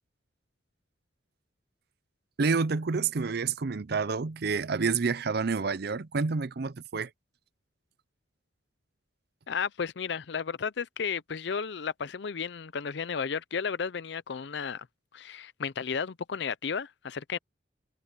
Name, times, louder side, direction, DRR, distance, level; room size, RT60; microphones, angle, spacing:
voice 1, 2.4-7.1, right 4 dB, 55° right, 0.6 m, -28 dB
voice 2, 9.5-14.9 15.1-17.4, left 6 dB, 65° left, 0.5 m, -33 dB
head